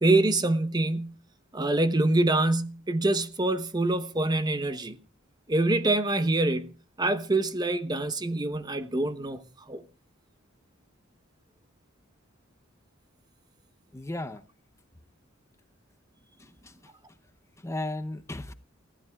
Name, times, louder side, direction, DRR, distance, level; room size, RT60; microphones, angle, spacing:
voice 1, 0.0-1.1 1.5-5.0 5.5-9.4 9.7-9.8, right 2 dB, 20° right, 1.0 m, -25 dB
voice 2, 13.9-14.4 16.4-16.7 17.6-18.5, left 1 dB, 15° left, 0.8 m, -35 dB
29.0 x 15.0 x 2.4 m
head